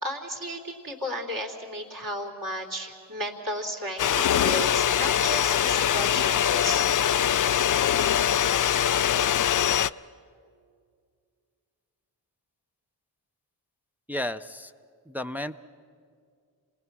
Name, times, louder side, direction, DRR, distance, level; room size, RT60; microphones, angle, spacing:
voice 1, 0.0-6.8, equal, 45° right, 0 dB, 3.4 m, -34 dB
sound 1, 4.0-9.9, left 10 dB, 45° left, 0.4 m, -23 dB
voice 2, 14.1-14.7 15.1-15.5, left 1 dB, 5° right, 8 dB, 0.6 m, -32 dB
27.0 x 19.5 x 6.1 m, 2.1 s
cardioid pair, 40°, 47 cm